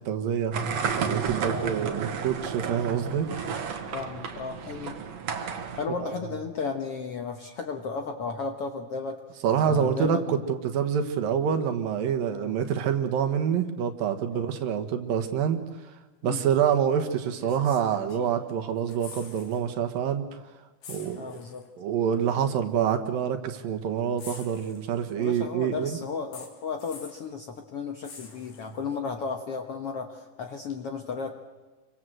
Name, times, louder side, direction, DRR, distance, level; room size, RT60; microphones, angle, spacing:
voice 1, 0.1-0.6 1.1-3.3 6.0-6.2 9.4-15.6 16.2-20.2 20.9-21.4 21.8-26.0, right 8 dB, 70° right, 7 dB, 3.1 m, -26 dB
sound 1, 0.5-5.9, right 6 dB, 55° right, 2.5 m, -32 dB
voice 2, 3.9-5.0 5.8-9.2 9.6-10.4 12.3-12.5 14.3-14.4 16.2-16.4 21.2-21.6 25.2-31.3, left 5 dB, 60° left, 5 dB, 1.6 m, -34 dB
sound 2, 16.5-16.7 17.4-18.5 18.8-19.6 19.9-20.1 20.8-21.7 22.7-22.8 24.2-25.2 26.3-27.3 28.0-29.0 30.7-30.8, left 5 dB, 90° left, 5.1 m, -46 dB
28.5 x 24.0 x 7.8 m, 1.3 s
omnidirectional pair, 4.2 m